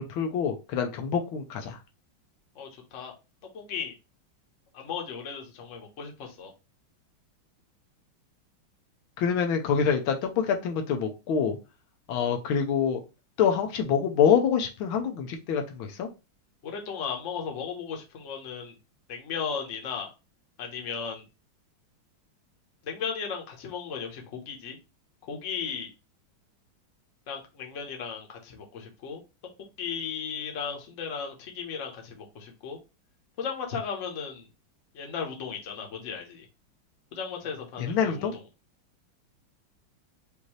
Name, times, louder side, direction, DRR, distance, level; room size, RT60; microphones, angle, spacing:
voice 1, 0.0-1.8 9.2-11.6 12.1-13.0 13.4-16.1 37.8-38.3, left 7 dB, 80° left, 4 dB, 1.5 m, -26 dB
voice 2, 2.5-3.1 3.5-3.9 4.7-6.5 16.6-18.8 19.1-20.1 20.6-21.3 22.8-24.8 25.2-25.9 27.3-29.2 29.8-32.8 33.4-34.5 34.9-36.5 37.1-38.4, left 6 dB, 45° left, 2 dB, 1.1 m, -36 dB
5.2 x 2.7 x 3.1 m, 0.28 s
omnidirectional pair, 2.2 m